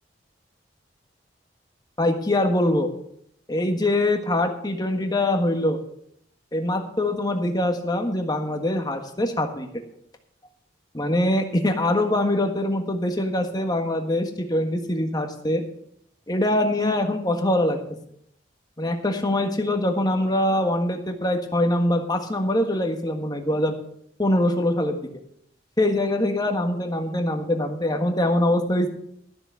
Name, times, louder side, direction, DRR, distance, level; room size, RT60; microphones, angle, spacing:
voice 1, 2.0-2.9 3.5-5.8 6.5-9.7 10.9-15.6 16.3-17.8 18.8-23.7 24.2-25.1 25.8-28.9, left 1 dB, 20° left, 5 dB, 1.5 m, -23 dB
13.0 x 7.0 x 6.9 m, 0.70 s
head